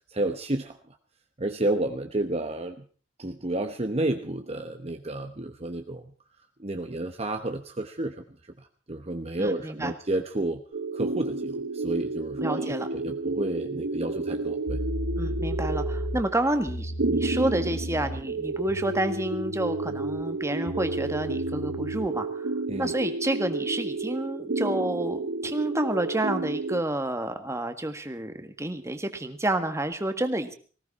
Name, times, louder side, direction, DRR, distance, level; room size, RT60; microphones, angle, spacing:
voice 1, 0.1-0.8 1.4-2.8 3.2-6.0 6.6-8.2 8.6-10.6 10.9-14.8 22.7-22.9, right 2 dB, 35° right, 6 dB, 1.1 m, -31 dB
voice 2, 9.4-9.9 12.4-12.9 15.2-22.5 22.8-30.5, right 1 dB, 15° right, 7 dB, 1.7 m, -29 dB
sound 1, 10.7-26.8, right 3 dB, 85° right, 1.0 m, -31 dB
sound 2, 14.2-14.3 14.7-22.2, equal, 60° left, 1.1 m, -35 dB
19.5 x 17.0 x 4.2 m, 0.41 s
head